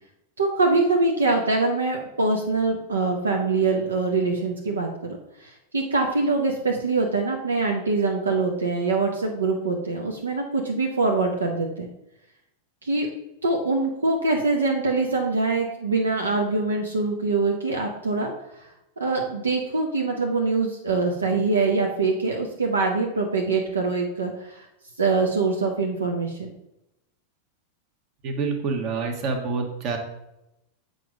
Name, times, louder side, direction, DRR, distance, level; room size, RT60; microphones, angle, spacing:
voice 1, 0.4-11.9 12.8-13.1 13.4-18.7 19.0-24.7 25.0-26.5, right 3 dB, 75° right, 1 dB, 0.8 m, -24 dB
voice 2, 28.2-30.0, right 4 dB, 40° right, 4 dB, 1.3 m, -27 dB
7.7 x 4.0 x 4.8 m, 0.87 s
figure-of-eight pair, 90°, 0 cm